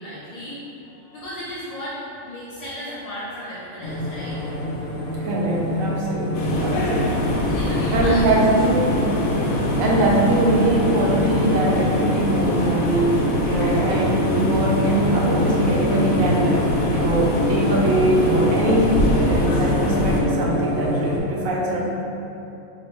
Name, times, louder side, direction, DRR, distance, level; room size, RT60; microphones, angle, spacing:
voice 1, 0.0-4.5 7.5-8.3, equal, 40° left, -10 dB, 0.5 m, -35 dB
sound 1, 3.8-21.2, left 1 dB, 60° left, 0.9 m, -27 dB
voice 2, 5.2-7.3 7.9-8.9 9.8-13.2 13.4-16.6 16.9-21.8, right 2 dB, 75° right, -3 dB, 1.1 m, -22 dB
sound 2, 6.3-20.2, left 1 dB, 90° left, 1.1 m, -23 dB
4.5 x 3.0 x 3.0 m, 2.9 s
omnidirectional pair, 1.4 m